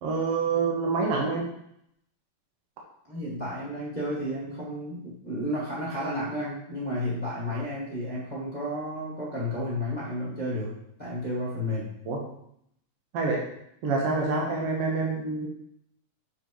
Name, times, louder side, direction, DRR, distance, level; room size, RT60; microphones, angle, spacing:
voice 1, 0.0-1.5 12.1-12.2 13.1-13.5 13.8-15.5, right 4 dB, 70° right, -1 dB, 1.5 m, -27 dB
voice 2, 3.1-10.7 11.0-11.9, left 1 dB, 15° left, -8 dB, 1.5 m, -32 dB
6.8 x 6.1 x 3.0 m, 0.73 s
omnidirectional pair, 3.9 m